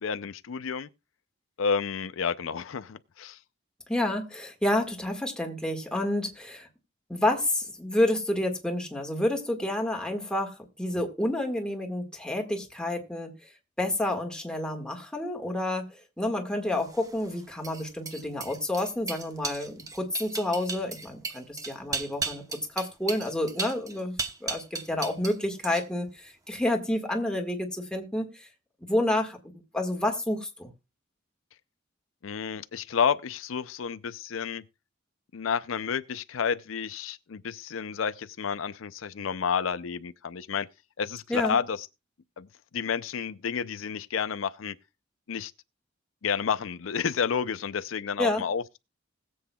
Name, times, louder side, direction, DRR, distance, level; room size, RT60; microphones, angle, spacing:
voice 1, 0.0-0.9 1.6-3.4 32.2-34.6 35.3-40.7 41.0-41.9 42.4-42.5 42.7-44.7 45.3-45.5 46.2-48.8, left 6 dB, 80° left, 0.5 m, -30 dB
voice 2, 3.9-6.7 7.1-13.3 13.8-22.4 22.7-28.5 28.8-29.4 29.7-30.7 41.3-41.6 48.2-48.4, left 1 dB, 5° left, 1.7 m, -29 dB
sound 1, 16.8-25.4 25.6-26.1, right 4 dB, 20° right, 0.9 m, -36 dB
20.0 x 7.8 x 2.3 m
head